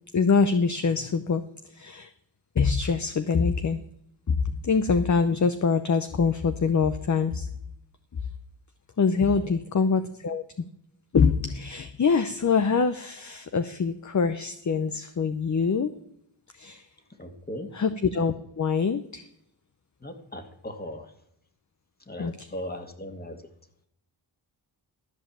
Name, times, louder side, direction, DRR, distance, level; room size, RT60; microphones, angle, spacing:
voice 1, 0.1-1.4 1.7-2.1 2.6-3.8 4.3-7.5 9.0-10.4 11.1-15.9 16.6-16.9 17.7-19.2 22.2-22.3, left 5 dB, 40° left, 10 dB, 0.8 m, -24 dB
voice 2, 17.2-17.7 20.0-21.1 22.1-23.4, left 1 dB, 20° left, 6 dB, 2.0 m, -38 dB
13.5 x 5.2 x 7.3 m, 0.75 s
cardioid pair, 50°, 46 cm